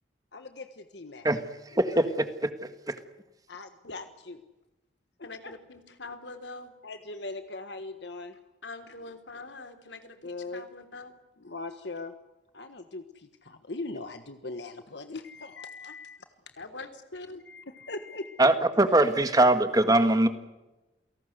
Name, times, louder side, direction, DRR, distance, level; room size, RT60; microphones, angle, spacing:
voice 1, 0.3-1.3 1.8-2.0 3.5-4.4 5.4-5.5 6.8-8.4 10.2-10.6 11.4-12.1 12.5-16.2 17.5-18.4 19.9-20.0, left 2 dB, 70° left, 8 dB, 1.4 m, -40 dB
voice 2, 1.2-3.0 18.4-20.3, right 1 dB, 20° right, 9 dB, 1.7 m, -23 dB
voice 3, 5.2-6.7 8.6-11.2 16.6-17.4, left 3 dB, 85° left, 7 dB, 3.4 m, -44 dB
28.5 x 18.5 x 8.0 m, 1.0 s
head